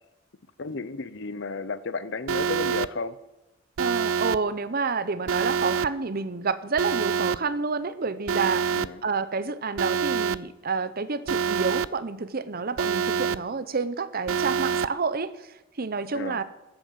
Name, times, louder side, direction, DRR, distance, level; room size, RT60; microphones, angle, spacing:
voice 1, 0.6-3.2 8.7-9.0 16.1-16.4, left 3 dB, 60° left, 15 dB, 0.8 m, -33 dB
Alarm, 2.3-2.9 3.8-4.4 5.3-5.9 6.8-7.4 8.3-8.9 9.8-10.4 11.3-11.9 12.8-13.4 14.3-14.9, right 6 dB, 85° right, 0.5 m, -26 dB
voice 2, 3.8-16.4, right 4 dB, 50° right, 14 dB, 0.7 m, -29 dB
13.5 x 8.8 x 7.5 m, 0.98 s
head